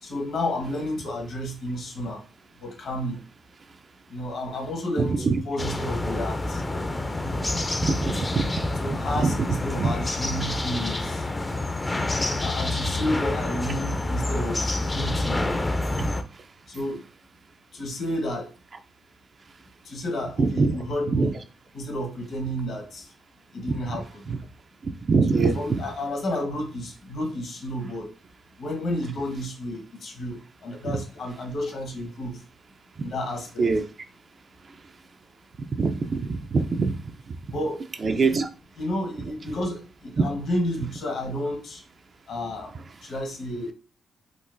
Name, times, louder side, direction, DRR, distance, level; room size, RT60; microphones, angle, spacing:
voice 1, 0.0-2.2 2.6-3.2 4.1-6.6 8.7-11.6 12.4-15.4 16.7-17.1 17.7-18.5 19.8-21.3 21.7-23.1 23.5-24.4 25.3-28.1 28.6-32.4 33.0-33.7 37.5-38.4 38.8-41.8 42.3-42.7 43.0-43.7, left 1 dB, 65° left, 1.1 m, -31 dB
voice 2, 5.0-5.4 7.8-8.6 9.2-9.3 9.8-9.9 16.0-16.1 20.4-20.7 21.1-21.3 23.7-23.8 24.8-25.6 33.6-33.9 35.8-36.9 38.0-38.5, right 4 dB, 45° right, 0.3 m, -23 dB
sound 1, 5.6-16.2, left 2 dB, 25° left, 0.4 m, -28 dB
3.7 x 2.1 x 2.5 m
cardioid pair, 65°, 0 cm